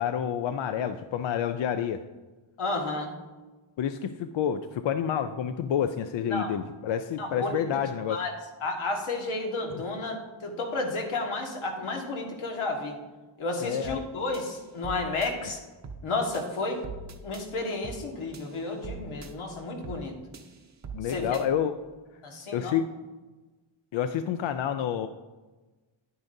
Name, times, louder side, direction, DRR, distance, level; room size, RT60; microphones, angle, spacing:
voice 1, 0.0-2.0 3.8-8.2 13.6-14.0 20.9-21.7 22.5-22.9 23.9-25.1, left 9 dB, 70° left, 9 dB, 0.5 m, -29 dB
voice 2, 2.6-3.1 6.3-6.5 7.2-7.7 8.1-8.3 8.6-13.0 13.4-15.6 16.0-16.8 17.2-20.1 21.1-21.4 22.2-22.7, left 2 dB, 90° left, 1 dB, 1.7 m, -32 dB
sound 1, 13.8-14.1 14.3-15.3 15.8-16.1 16.3-17.5 17.8-18.1 18.3-19.3 19.8-20.1 20.3-21.5, right 4 dB, 35° right, 0.7 m, -42 dB
10.5 x 9.5 x 2.7 m, 1.2 s
wide cardioid pair, 145°, 48 cm